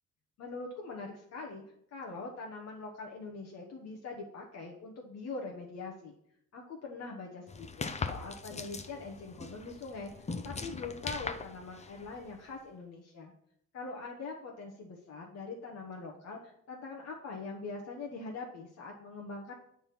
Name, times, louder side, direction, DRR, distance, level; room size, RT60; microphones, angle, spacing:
voice 1, 0.4-1.6 1.9-6.1 6.5-13.3 13.7-19.5, left 3 dB, 55° left, 0 dB, 1.1 m, -43 dB
sound 1, 7.5-12.5, left 4 dB, 20° left, 0.7 m, -41 dB
8.0 x 3.7 x 5.8 m, 0.73 s
cardioid pair, 90°, 30 cm